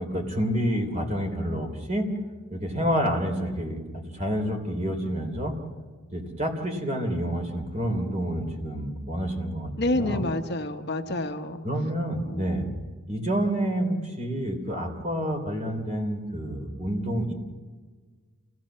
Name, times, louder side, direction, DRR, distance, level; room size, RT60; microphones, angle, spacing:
voice 1, 0.0-2.1 2.5-5.5 6.1-10.2 11.6-12.6 13.1-17.3, equal, 35° right, 4 dB, 3.3 m, -28 dB
voice 2, 9.8-11.6 12.3-12.8, left 1 dB, 50° left, 6 dB, 1.1 m, -29 dB
27.5 x 16.5 x 7.4 m, 1.4 s
head